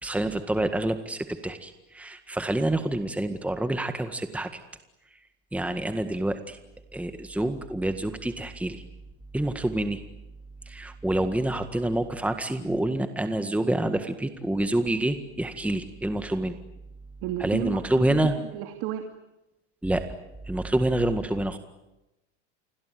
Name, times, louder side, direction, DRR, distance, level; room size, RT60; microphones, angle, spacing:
voice 1, 0.0-4.6 5.5-6.6 6.9-8.8 9.3-10.0 10.7-16.5 17.4-18.4 19.8-20.0 20.5-21.6, right 1 dB, 5° right, 8 dB, 1.8 m, -27 dB
voice 2, 17.2-19.0, right 12 dB, 60° right, 6 dB, 2.8 m, -33 dB
28.5 x 22.0 x 9.5 m, 0.96 s
supercardioid pair, 115°, 36 cm